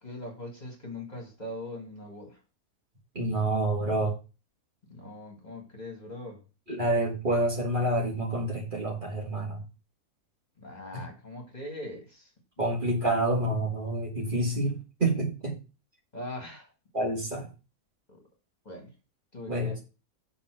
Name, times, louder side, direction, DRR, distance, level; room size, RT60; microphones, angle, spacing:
voice 1, 0.0-2.4 4.9-6.4 10.6-12.3 12.6-12.7 16.1-16.7 18.1-18.2 18.7-18.9 19.3-19.8, left 1 dB, 30° left, 1 dB, 2.0 m, -41 dB
voice 2, 3.2-4.1 6.7-9.6 12.6-15.5 16.9-17.5 19.5-19.7, right 1 dB, 35° right, -2 dB, 2.0 m, -28 dB
7.0 x 3.8 x 6.2 m, 0.32 s
omnidirectional pair, 1.5 m